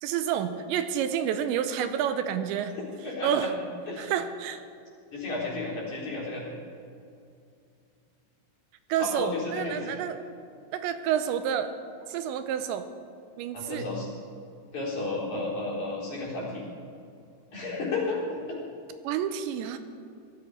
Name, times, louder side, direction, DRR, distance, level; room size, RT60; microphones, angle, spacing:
voice 1, 0.0-2.7 3.2-3.5 4.0-4.6 8.9-10.2 10.7-11.8 12.1-12.9 13.4-13.9 19.0-19.8, right 9 dB, 85° right, 9 dB, 2.9 m, -29 dB
voice 2, 2.7-3.5 3.9-4.1 5.1-6.4 9.0-10.0 13.5-14.1 14.7-16.6 17.5-18.6, left 3 dB, 40° left, -6 dB, 5.1 m, -32 dB
18.5 x 13.5 x 5.6 m, 2.5 s
omnidirectional pair, 5.3 m